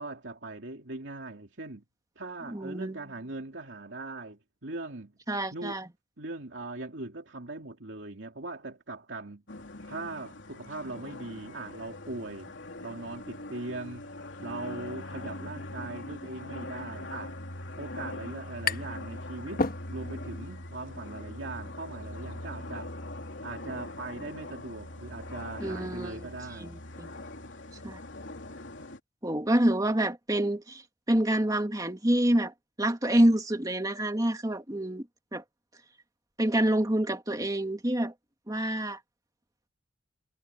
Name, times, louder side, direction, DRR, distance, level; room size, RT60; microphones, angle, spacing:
voice 1, 0.0-1.8 2.2-5.1 5.5-5.8 6.2-9.4 9.8-12.5 12.8-14.1 14.4-17.3 17.8-22.9 23.4-26.8, right 2 dB, 75° right, 2.6 m, -40 dB
voice 2, 2.5-3.0 5.3-5.9 25.6-26.3 26.6-27.1 27.8-28.0 29.2-30.8 31.1-32.5 32.8-35.1 35.3-35.4 36.4-38.1 38.5-39.0, right 1 dB, 20° right, 2.2 m, -27 dB
sound 1, 9.5-29.0, left 1 dB, 75° left, 3.4 m, -42 dB
sound 2, 17.6-17.7 17.8-19.1 19.4-20.3, left 3 dB, 50° left, 1.4 m, -32 dB
head